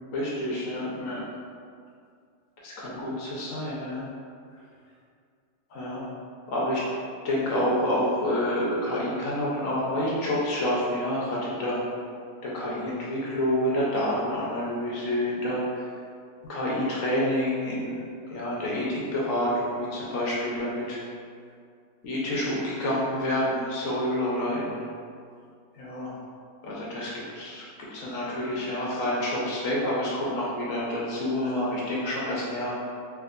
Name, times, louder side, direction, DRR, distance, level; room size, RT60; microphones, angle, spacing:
voice 1, 0.1-1.2 2.6-4.1 5.7-6.0 6.5-6.8 7.2-11.8 12.4-15.8 16.5-21.0 22.0-24.8 25.7-26.1 26.6-27.6 27.9-32.7, left 1 dB, 60° left, -6 dB, 0.9 m, -28 dB
3.5 x 2.8 x 2.4 m, 2.2 s
omnidirectional pair, 1.9 m